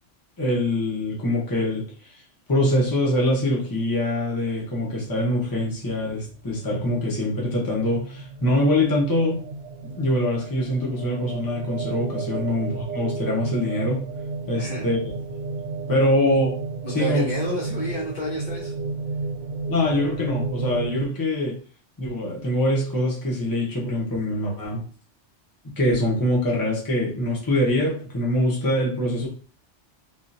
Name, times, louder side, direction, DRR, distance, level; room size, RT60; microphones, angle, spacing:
voice 1, 0.4-1.9 2.5-9.4 9.8-14.1 14.5-15.0 15.9-16.6 16.9-17.2 19.7-21.6 22.0-24.8 25.8-29.3, left 1 dB, 20° left, -3 dB, 0.9 m, -24 dB
sound 1, 5.1-21.1, right 4 dB, 85° right, 0.9 m, -33 dB
voice 2, 14.6-14.9 16.8-18.7, equal, 45° left, -5 dB, 1.0 m, -30 dB
3.6 x 2.4 x 2.6 m, 0.41 s
omnidirectional pair, 1.2 m